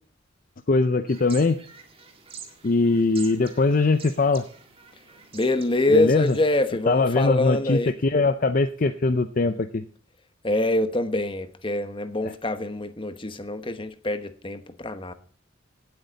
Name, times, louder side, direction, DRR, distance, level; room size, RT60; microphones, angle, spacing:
voice 1, 0.7-1.6 2.6-4.4 5.9-6.3 6.9-9.8 12.2-12.3, left 3 dB, 40° left, 0.5 m, -21 dB
sound 1, 1.1-6.7, right 6 dB, 30° right, 2.0 m, -46 dB
voice 2, 5.3-8.0 10.4-15.1, left 2 dB, 25° left, 1.0 m, -25 dB
17.0 x 8.0 x 4.0 m
head